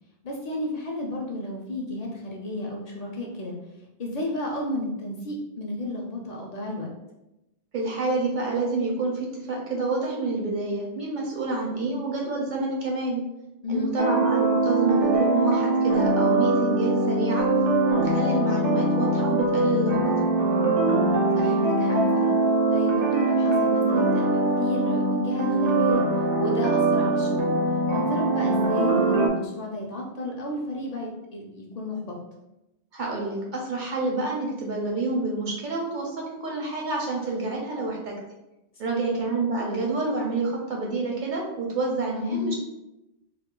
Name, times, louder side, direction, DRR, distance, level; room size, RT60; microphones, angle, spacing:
voice 1, 0.2-3.6 4.0-6.9 11.7-12.0 13.6-13.9 21.3-22.4 22.7-26.1 26.4-27.5 27.9-32.2 38.8-39.0 42.1-42.5, left 1 dB, 55° left, -1 dB, 0.4 m, -32 dB
voice 2, 7.7-13.2 13.7-17.5 18.0-20.1 32.9-38.1 38.8-42.5, right 3 dB, 55° right, -2 dB, 0.6 m, -28 dB
sound 1, 14.0-29.3, right 2 dB, 80° right, 0.9 m, -22 dB
2.3 x 2.3 x 3.6 m, 0.95 s
omnidirectional pair, 1.2 m